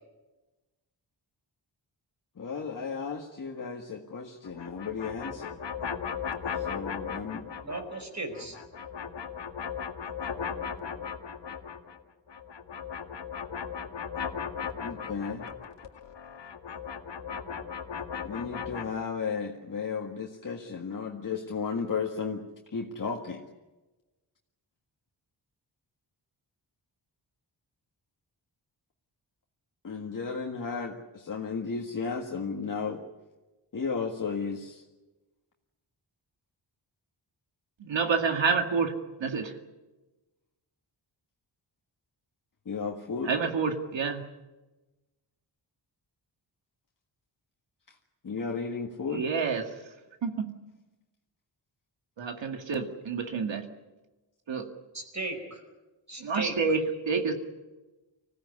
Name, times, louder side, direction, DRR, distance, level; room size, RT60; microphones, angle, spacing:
voice 1, 2.4-5.6 6.5-7.5 14.8-15.5 18.2-22.4 22.7-23.4 29.8-33.0 33.7-34.8 42.7-43.3 47.9-48.0 48.2-49.2, left 5 dB, 45° left, 0 dB, 1.8 m, -34 dB
sound 1, 4.4-8.0 8.3-12.0 12.3-18.8, left 7 dB, 70° left, 2.0 m, -37 dB
voice 2, 7.6-8.6 54.9-55.6 56.1-56.6, right 2 dB, 40° right, 6 dB, 4.7 m, -36 dB
voice 3, 37.8-38.9 39.2-39.6 43.2-44.2 49.1-49.7 50.2-50.5 52.2-53.7 54.5-54.7 56.2-57.3, right 5 dB, 80° right, 5 dB, 2.2 m, -28 dB
25.5 x 16.5 x 9.8 m, 1.1 s
wide cardioid pair, 175°, 44 cm